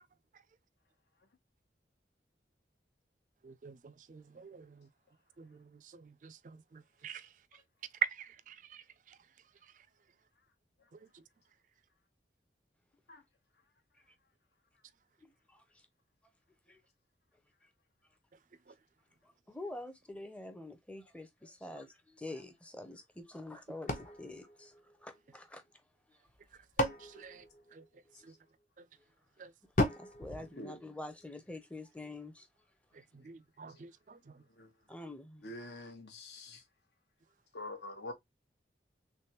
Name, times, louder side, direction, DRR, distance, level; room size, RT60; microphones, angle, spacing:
voice 1, 3.4-4.9 5.4-7.3 8.1-9.2 9.6-9.9 10.9-11.2 18.7-18.8 26.8-27.5 27.7-27.8 28.2-28.3 29.4-29.5 32.9-34.4, right 6 dB, 45° right, 0.3 m, -53 dB
voice 2, 15.2-15.6 16.7-16.8 19.5-24.7 25.0-25.6 30.0-32.5 34.9-35.5, left 2 dB, 5° left, 0.6 m, -46 dB
sound 1, 23.9-25.4 26.3-28.3 29.8-31.4, equal, 45° left, 0.8 m, -36 dB
voice 3, 35.4-36.6 37.5-38.1, left 2 dB, 75° left, 1.1 m, -45 dB
3.4 x 3.3 x 2.9 m
head